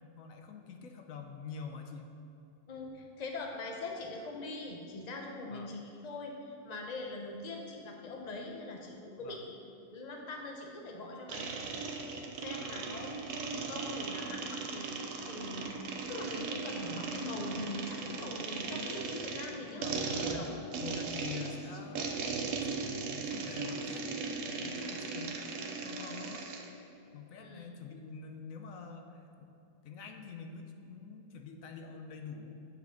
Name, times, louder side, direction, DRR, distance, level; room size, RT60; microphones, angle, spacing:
voice 1, 0.0-2.1 5.5-5.7 9.2-9.5 15.6-15.8 19.5-20.5 20.8-22.3 22.6-26.5 27.1-29.5 29.8-32.5, left 5 dB, 85° left, 5 dB, 1.1 m, -46 dB
voice 2, 2.7-9.6 9.9-20.5 27.4-27.7, left 2 dB, 35° left, 1 dB, 0.9 m, -42 dB
sound 1, 11.3-26.7, right 4 dB, 70° right, 1.1 m, -38 dB
8.4 x 5.0 x 5.8 m, 2.8 s
omnidirectional pair, 1.4 m